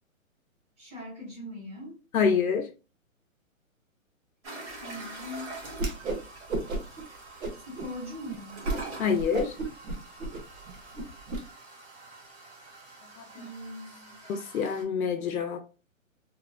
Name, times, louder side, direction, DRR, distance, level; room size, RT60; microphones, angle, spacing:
voice 1, 0.8-2.0 4.8-5.5 7.5-8.6 13.3-14.2, left 1 dB, 10° right, 0.7 m, -41 dB
voice 2, 2.1-2.7 9.0-9.6 13.2-13.3 14.3-15.6, left 6 dB, 85° left, 0.6 m, -26 dB
sound 1, 4.4-14.8, right 3 dB, 55° right, 1.3 m, -45 dB
Whoosh swoosh swish, 5.7-6.2 6.5-7.0 7.4-7.9 8.3-8.4 8.6-8.8 9.2-11.4, right 2 dB, 70° right, 1.0 m, -32 dB
2.9 x 2.5 x 2.3 m
hypercardioid pair, 170°, 41 cm